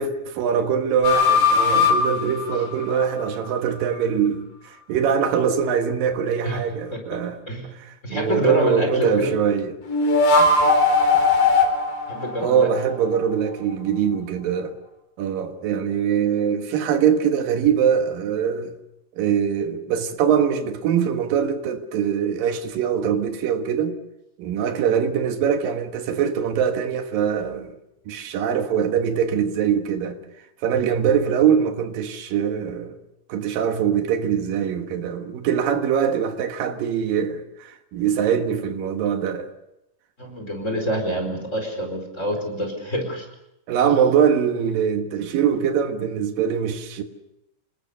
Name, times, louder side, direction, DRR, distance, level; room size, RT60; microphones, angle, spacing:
voice 1, 0.0-7.4 7.7-9.8 11.1-11.3 12.4-14.8 15.2-18.8 19.2-24.0 24.4-27.7 28.1-30.2 30.6-33.0 33.3-39.5 43.7-47.0, right 7 dB, 85° right, 3.3 m, -23 dB
sound 1, 1.0-3.4 9.9-13.2, left 3 dB, 80° left, 5.4 m, -19 dB
voice 2, 8.0-9.3 12.1-12.7 40.2-43.3, equal, 20° left, 4.8 m, -26 dB
27.5 x 20.5 x 6.8 m
omnidirectional pair, 3.9 m